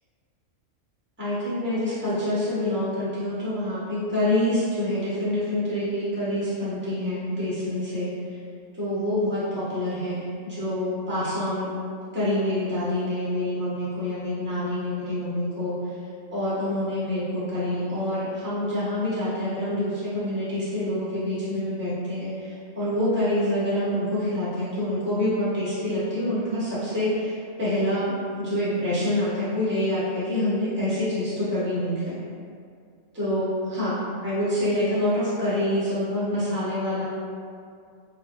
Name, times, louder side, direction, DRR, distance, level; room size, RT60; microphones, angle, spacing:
voice 1, 1.2-8.1 8.8-11.7 12.1-15.8 16.3-32.2 33.1-37.0, left 1 dB, 10° right, -12 dB, 0.9 m, -26 dB
3.5 x 2.3 x 2.5 m, 2.3 s
omnidirectional pair, 1.4 m